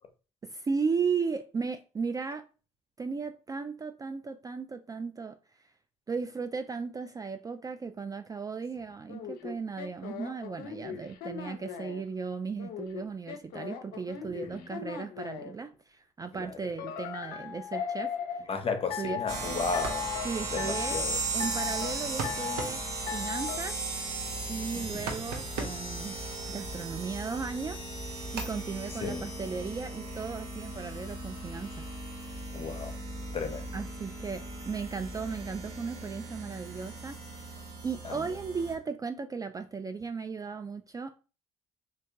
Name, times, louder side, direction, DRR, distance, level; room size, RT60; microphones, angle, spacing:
voice 1, 0.4-2.4 3.0-5.4 6.1-18.1 19.0-19.2 20.2-21.0 21.3-22.8 23.1-23.8 24.5-26.2 26.5-31.9 33.7-41.2, right 5 dB, 20° right, 0.3 m, -36 dB
sound 1, 9.1-12.0 12.6-15.5 16.8-18.4 18.9-19.4 19.7-20.3 20.6-21.0 21.4-21.9 22.2-22.7 23.1-23.6, left 8 dB, 60° left, 0.6 m, -37 dB
voice 2, 18.5-20.1 20.5-21.2 24.7-25.1 29.0-29.3 32.5-32.9 33.3-33.7 38.0-38.3, left 4 dB, 35° left, 0.8 m, -34 dB
sound 2, 19.3-38.7, right 2 dB, 35° right, 1.6 m, -37 dB
sound 3, 19.6-27.2 27.7-30.4, right 4 dB, 65° right, 0.9 m, -44 dB
3.3 x 2.8 x 2.8 m
hypercardioid pair, 55°, 17 cm